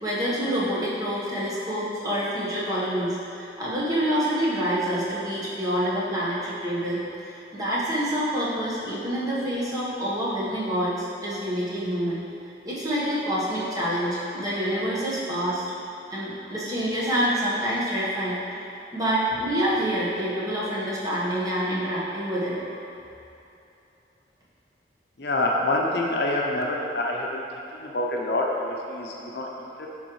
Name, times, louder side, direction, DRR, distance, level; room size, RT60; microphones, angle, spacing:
voice 1, 0.0-12.2 12.6-15.6 16.1-22.7, equal, 20° right, -8 dB, 1.2 m, -27 dB
voice 2, 25.2-29.9, left 2 dB, 65° left, -1 dB, 0.7 m, -27 dB
10.5 x 3.8 x 3.1 m, 2.8 s
head